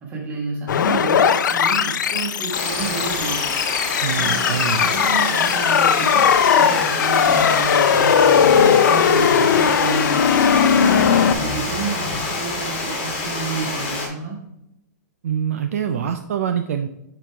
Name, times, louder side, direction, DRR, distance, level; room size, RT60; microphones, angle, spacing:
voice 1, 0.0-3.5 4.2-6.2 6.6-14.4, right 5 dB, 15° right, -1 dB, 1.3 m, -30 dB
sound 1, 0.7-11.3, left 7 dB, 85° left, 0.5 m, -18 dB
Water, 2.5-14.1, left 3 dB, 25° left, 1.5 m, -27 dB
voice 2, 4.0-4.9 15.2-16.9, right 8 dB, 50° right, 8 dB, 0.4 m, -25 dB
8.9 x 4.9 x 3.4 m, 0.85 s
hypercardioid pair, 180°, 10 cm